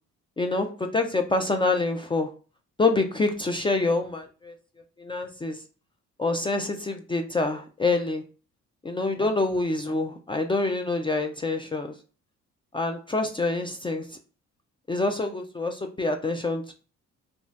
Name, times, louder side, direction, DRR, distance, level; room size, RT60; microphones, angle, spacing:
voice 1, 0.4-2.3 2.8-4.5 5.0-5.6 6.2-8.2 8.8-11.9 12.7-14.0 14.9-16.7, left 3 dB, 15° left, 4 dB, 0.3 m, -26 dB
2.7 x 2.3 x 3.2 m, 0.37 s
cardioid pair, 90°, 30 cm